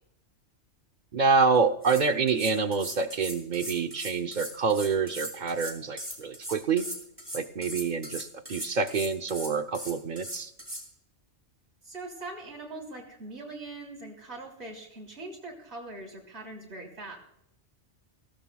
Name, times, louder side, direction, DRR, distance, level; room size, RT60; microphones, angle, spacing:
voice 1, 1.1-6.9 7.3-10.5, right 5 dB, 50° right, 9 dB, 0.8 m, -27 dB
sound 1, 1.5-1.6 1.8-10.8, equal, 30° right, 3.1 m, -39 dB
voice 2, 11.8-17.2, right 2 dB, 70° right, -1 dB, 3.7 m, -42 dB
21.0 x 17.0 x 2.3 m, 0.80 s
omnidirectional pair, 1.2 m